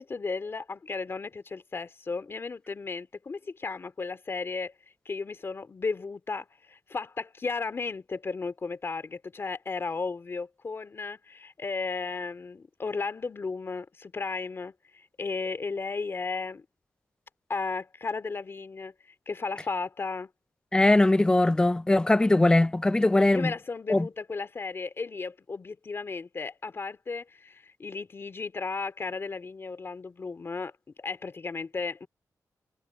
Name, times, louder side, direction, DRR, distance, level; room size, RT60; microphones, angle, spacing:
voice 1, 0.0-4.7 5.0-16.6 17.5-18.9 19.3-20.3 23.3-32.1, left 4 dB, 40° left, 2.6 m, -34 dB
voice 2, 20.7-23.5 23.9-24.1, left 2 dB, 10° left, 0.4 m, -21 dB
wide cardioid pair, 130°, 7 cm